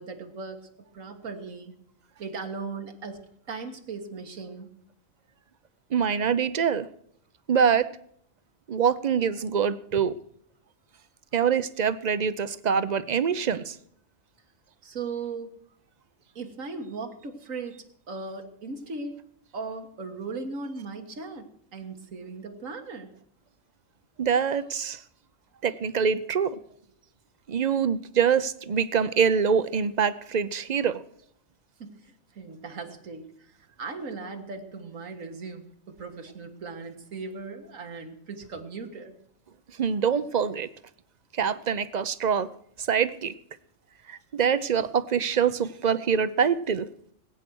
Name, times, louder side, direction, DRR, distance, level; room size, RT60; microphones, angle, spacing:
voice 1, 0.0-1.8 2.2-4.7 14.8-15.6 16.4-19.3 19.5-23.1 31.8-39.2, right 4 dB, 85° right, 5 dB, 1.9 m, -38 dB
voice 2, 5.9-6.9 7.5-7.9 8.7-10.2 11.3-13.8 24.2-25.0 25.6-26.6 27.5-31.0 39.8-40.7 41.3-42.5 42.8-43.3 44.1-46.9, right 7 dB, 45° right, 15 dB, 0.6 m, -25 dB
19.5 x 9.1 x 6.2 m, 0.67 s
omnidirectional pair, 1.4 m